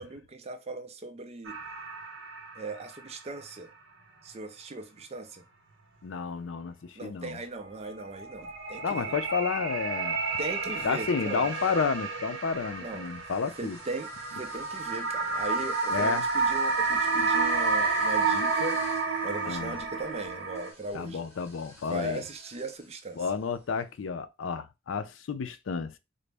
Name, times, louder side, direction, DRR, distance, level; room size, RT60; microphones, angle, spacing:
voice 1, 0.0-1.6 2.6-3.7 4.2-5.4 7.0-9.1 10.4-11.5 12.8-13.1 13.6-18.8 19.2-21.3 21.9-23.2, right 2 dB, 35° right, 0.5 m, -38 dB
sound 1, 1.4-3.0 3.4-3.5 7.8-20.7, right 4 dB, 75° right, 0.8 m, -30 dB
voice 2, 6.0-7.4 8.8-10.2 10.8-13.8 15.9-16.2 19.5-19.8 20.9-22.2 23.2-25.9, left 5 dB, 85° left, 0.4 m, -31 dB
sound 2, 10.1-10.8 11.5-23.8, equal, 15° left, 1.2 m, -52 dB
3.9 x 2.0 x 3.3 m
head